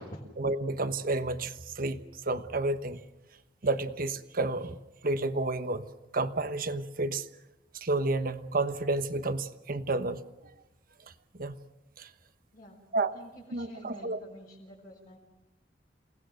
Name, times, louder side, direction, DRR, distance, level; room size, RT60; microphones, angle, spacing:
voice 1, 0.4-3.0 3.6-4.8 5.0-7.3 7.7-10.2 11.3-11.6 12.0-12.1 12.9-13.2 13.5-14.2, right 2 dB, 55° right, 11 dB, 1.2 m, -31 dB
voice 2, 13.1-15.2, equal, 45° left, -5 dB, 5.2 m, -48 dB
28.5 x 19.0 x 6.5 m, 1.0 s
head